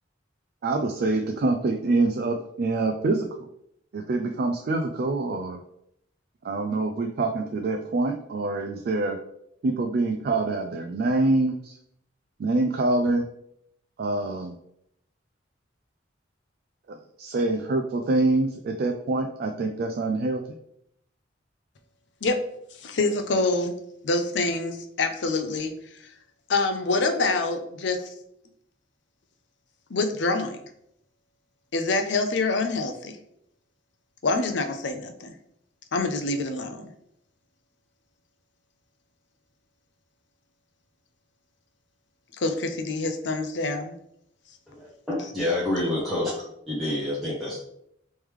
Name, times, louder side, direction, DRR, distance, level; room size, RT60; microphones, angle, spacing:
voice 1, 0.6-3.5 3.9-5.6 6.4-9.2 9.6-11.8 12.4-13.2 14.0-14.6 16.9-20.4, right 2 dB, 55° right, 4 dB, 0.3 m, -25 dB
voice 2, 22.8-23.7 24.0-25.7 26.5-28.1 29.9-30.6 31.7-33.1 34.2-35.3 35.9-36.9 42.4-43.9, left 3 dB, 65° left, 7 dB, 0.5 m, -26 dB
voice 3, 44.7-47.6, left 1 dB, ahead, -9 dB, 0.8 m, -28 dB
3.5 x 3.2 x 3.1 m, 0.73 s
head